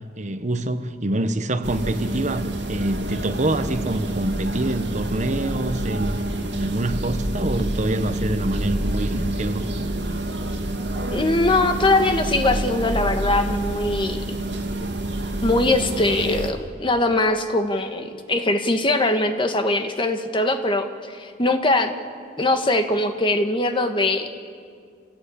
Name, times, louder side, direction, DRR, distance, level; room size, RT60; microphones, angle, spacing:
voice 1, 0.2-9.7, right 1 dB, 40° right, 9 dB, 1.1 m, -26 dB
sound 1, 1.6-16.5, right 1 dB, 75° right, 2.4 m, -27 dB
voice 2, 11.1-14.4 15.4-21.9 22.4-24.3, left 2 dB, 30° left, 6 dB, 1.5 m, -21 dB
27.0 x 17.0 x 8.6 m, 2.2 s
head